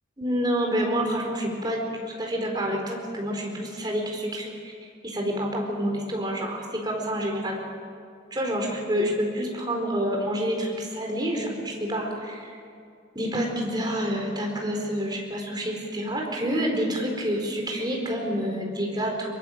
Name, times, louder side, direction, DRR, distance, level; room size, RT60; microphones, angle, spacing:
voice 1, 0.2-1.9 2.2-7.6 8.3-12.6 13.1-19.3, equal, 20° right, 0 dB, 4.4 m, -28 dB
23.0 x 22.5 x 7.6 m, 2.3 s
head